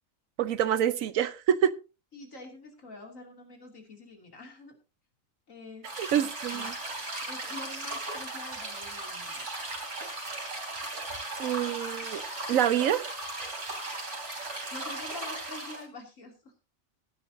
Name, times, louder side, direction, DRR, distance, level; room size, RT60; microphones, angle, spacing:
voice 1, 0.4-1.7 6.0-6.7 11.4-12.2 12.5-13.1, right 10 dB, 80° right, 15 dB, 1.2 m, -26 dB
voice 2, 2.1-4.8 5.5-5.9 6.2-6.7 7.3-9.4 14.7-16.5, left 2 dB, 70° left, 3 dB, 3.1 m, -46 dB
sound 1, 5.8-15.9, right 2 dB, 60° right, 3.6 m, -37 dB
17.0 x 11.0 x 2.7 m, 0.30 s
omnidirectional pair, 1.4 m